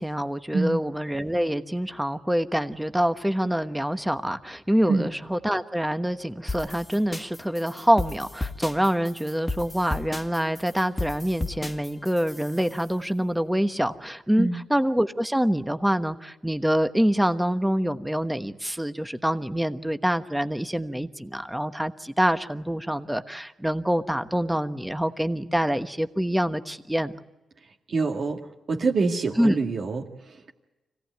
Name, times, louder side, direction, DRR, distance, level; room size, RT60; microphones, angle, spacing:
voice 1, 0.0-27.1 29.4-29.6, equal, 5° right, 9 dB, 1.2 m, -26 dB
sound 1, 6.5-12.8, left 2 dB, 15° left, 1.8 m, -34 dB
voice 2, 27.6-28.4 28.7-30.5, right 3 dB, 55° right, 0 dB, 2.0 m, -26 dB
25.5 x 17.0 x 9.3 m, 1.1 s
cardioid pair, 85°, 0 cm